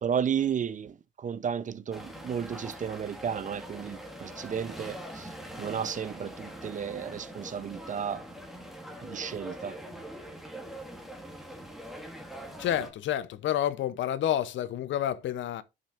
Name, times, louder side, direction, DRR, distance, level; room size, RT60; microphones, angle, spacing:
voice 1, 0.0-5.3 5.6-8.2 9.0-9.8, right 8 dB, 40° right, 0.6 m, -33 dB
sound 1, 1.9-12.9, equal, ahead, 1.7 m, -43 dB
voice 2, 12.6-15.6, left 11 dB, 70° left, 0.6 m, -29 dB
12.0 x 5.5 x 2.4 m
cardioid pair, 90°, 20 cm